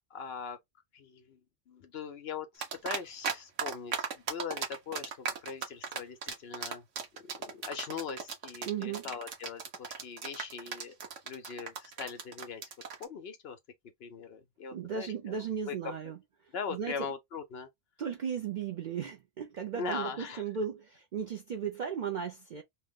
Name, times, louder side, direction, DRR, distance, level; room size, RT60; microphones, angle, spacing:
voice 1, 0.1-0.6 0.9-1.4 1.7-6.8 7.2-10.9 11.3-12.6 13.0-13.6 14.0-15.4 15.7-15.8 16.5-17.7 19.8-20.4, left 6 dB, 60° left, 0.8 m, -41 dB
sound 1, 2.6-3.3 3.6-13.0, right 6 dB, 85° right, 1.1 m, -36 dB
voice 2, 8.6-9.1 14.7-16.2 16.4-17.1 18.0-22.6, right 7 dB, 60° right, 0.5 m, -36 dB
2.8 x 2.0 x 3.5 m
omnidirectional pair, 1.2 m